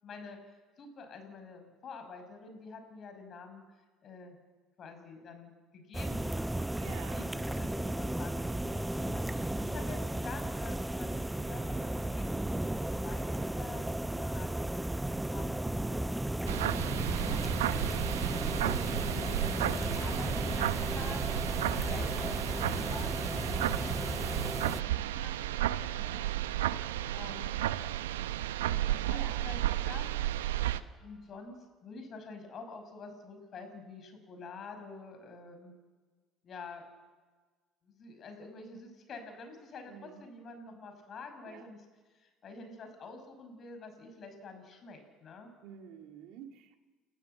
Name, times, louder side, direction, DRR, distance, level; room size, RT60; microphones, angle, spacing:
voice 1, 0.0-3.6 4.0-4.4 4.8-14.5 15.3-16.1 16.4-16.7 17.2-17.4 17.7-18.0 18.7-21.4 21.8-26.2 27.1-27.6 28.9-30.1 31.0-35.7 36.4-36.8 37.8-45.5, left 4 dB, 45° left, 7 dB, 5.8 m, -48 dB
sound 1, 5.9-24.8, right 1 dB, 10° right, 0.7 m, -34 dB
voice 2, 6.7-7.4 18.7-19.2 29.1-29.5 39.9-40.2 41.5-41.6 45.6-46.8, right 9 dB, 70° right, 5 dB, 2.3 m, -48 dB
sound 2, 16.5-30.8, right 13 dB, 85° right, 0.7 m, -33 dB
sound 3, 19.2-31.4, left 1 dB, 10° left, 5.1 m, -58 dB
29.5 x 14.5 x 7.9 m, 1.4 s
hypercardioid pair, 70°, 0 cm